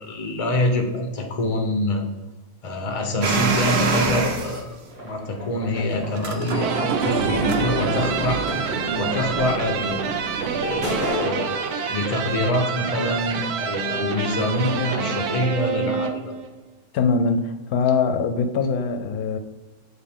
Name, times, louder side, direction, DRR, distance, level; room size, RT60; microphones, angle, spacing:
voice 1, 0.0-2.0 2.6-4.7 5.0-8.4 9.0-16.3, left 1 dB, 30° left, 0.8 m, -25 dB
sound 1, 3.2-4.6 6.1-11.1, right 4 dB, 50° right, 0.9 m, -26 dB
sound 2, 4.9-15.3, left 1 dB, 25° right, 1.8 m, -35 dB
sound 3, 6.6-16.5, right 6 dB, 85° right, 1.1 m, -28 dB
voice 2, 16.9-19.4, left 4 dB, 80° left, 1.0 m, -22 dB
7.3 x 4.0 x 3.6 m
omnidirectional pair, 1.6 m